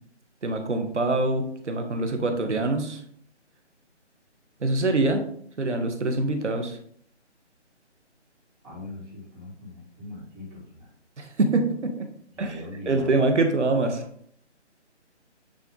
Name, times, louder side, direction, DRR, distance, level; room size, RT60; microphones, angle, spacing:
voice 1, 0.4-3.0 4.6-5.2 5.6-6.8 11.2-12.1 12.4-14.0, right 2 dB, 75° right, 6 dB, 1.3 m, -25 dB
voice 2, 8.6-10.9 12.3-13.1, left 1 dB, 15° right, -9 dB, 3.1 m, -41 dB
9.2 x 4.2 x 3.8 m, 0.62 s
figure-of-eight pair, 170°, 36 cm